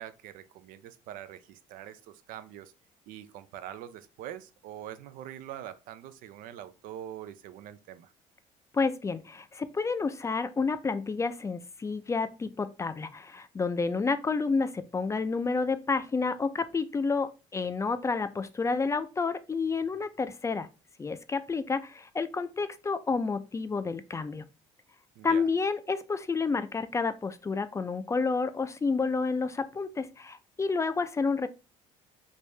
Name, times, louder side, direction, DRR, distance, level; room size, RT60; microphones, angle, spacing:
voice 1, 0.0-2.7 3.1-8.1 25.2-25.5, right 11 dB, 75° right, 0.4 m, -44 dB
voice 2, 8.7-20.7 21.0-24.4 25.2-31.5, left 4 dB, 20° left, 0.4 m, -30 dB
3.3 x 2.6 x 3.2 m
supercardioid pair, 90°, 14 cm